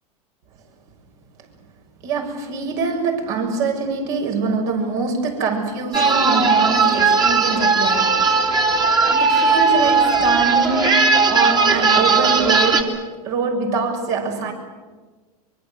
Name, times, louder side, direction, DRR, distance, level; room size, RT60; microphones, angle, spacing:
voice 1, 2.0-8.2 9.2-14.5, right 4 dB, 60° right, 6.8 m, -24 dB
sound 1, 5.9-12.8, right 4 dB, 20° right, 2.8 m, -17 dB
23.5 x 23.5 x 8.0 m
hypercardioid pair, 110°, 20 cm